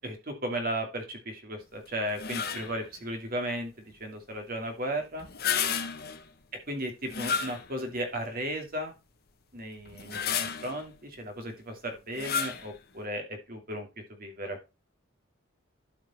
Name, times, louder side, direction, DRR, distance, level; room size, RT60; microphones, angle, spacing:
voice 1, 0.0-3.7 4.0-5.3 6.7-8.9 9.5-13.9 14.2-14.6, right 1 dB, 45° right, 5 dB, 2.4 m, -35 dB
sound 1, 2.1-2.8 5.2-6.3 7.1-8.0 8.5-8.6 9.9-10.8 12.1-12.7, left 7 dB, 50° left, 1.3 m, -32 dB
12.5 x 5.2 x 4.2 m, 0.27 s
head